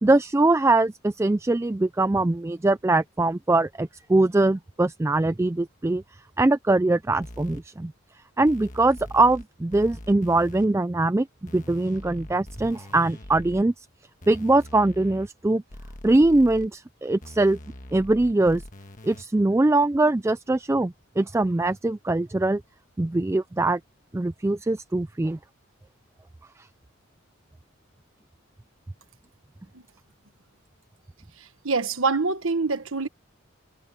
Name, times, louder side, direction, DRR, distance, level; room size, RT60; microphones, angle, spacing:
voice 1, 0.0-6.0 6.4-7.9 8.4-11.3 11.5-13.7 14.3-15.6 16.0-17.6 17.9-18.6 19.0-22.6 23.0-23.8 24.1-25.4, right 2 dB, 15° right, 0.3 m, -22 dB
sound 1, 7.2-7.6 8.5-9.4 9.7-10.7 11.5-13.6 14.2-15.3 15.7-16.7 17.2-19.2, left 1 dB, 40° left, 1.4 m, -42 dB
voice 2, 31.6-33.1, right 4 dB, 75° right, 1.3 m, -25 dB
head